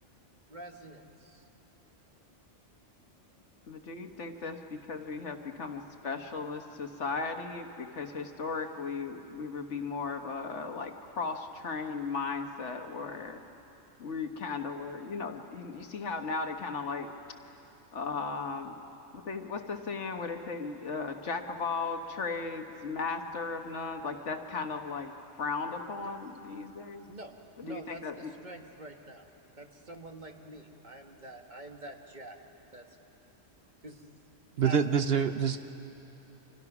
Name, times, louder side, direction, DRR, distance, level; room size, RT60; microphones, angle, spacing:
voice 1, 0.5-1.4 26.0-26.1 27.1-27.3 27.6-29.3 29.6-32.4 32.7-32.9 33.8-34.1 34.4-35.4, right 1 dB, 40° right, 3 dB, 1.7 m, -46 dB
voice 2, 3.7-13.4 14.0-17.1 17.9-18.7 19.1-25.1 25.4-27.0 27.6-28.3, left 4 dB, 70° left, 5 dB, 1.6 m, -36 dB
voice 3, 34.6-35.6, right 7 dB, 60° right, 9 dB, 0.9 m, -26 dB
30.0 x 26.0 x 6.0 m, 3.0 s
omnidirectional pair, 1.2 m